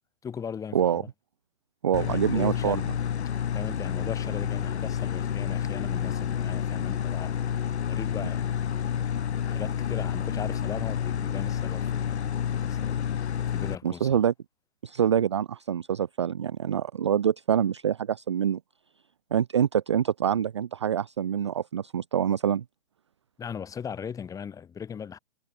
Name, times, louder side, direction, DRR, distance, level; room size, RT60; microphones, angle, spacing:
voice 1, 0.2-1.1 2.0-2.9 3.5-7.4 7.9-8.5 9.4-12.3 12.6-13.1 13.5-14.2 23.4-25.2, left 7 dB, 10° left, 3.1 m, -38 dB
voice 2, 1.8-2.8 13.8-14.3 14.8-18.6 19.3-22.6, right 9 dB, 25° right, 0.4 m, -25 dB
sound 1, 1.9-13.7, left 8 dB, 70° left, 1.0 m, -29 dB
hypercardioid pair, 145°, 34 cm